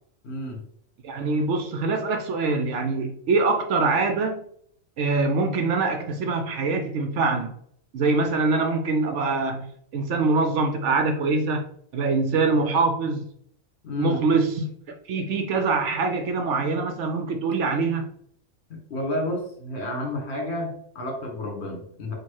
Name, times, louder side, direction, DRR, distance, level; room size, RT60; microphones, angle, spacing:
voice 1, 0.2-0.6 13.8-14.2 18.7-22.1, left 1 dB, 50° left, 1.7 m, -31 dB
voice 2, 1.0-4.4 5.0-7.6 7.9-11.6 11.9-13.2 14.0-18.1, right 3 dB, 65° right, 0.8 m, -24 dB
4.2 x 2.5 x 4.6 m
omnidirectional pair, 1.4 m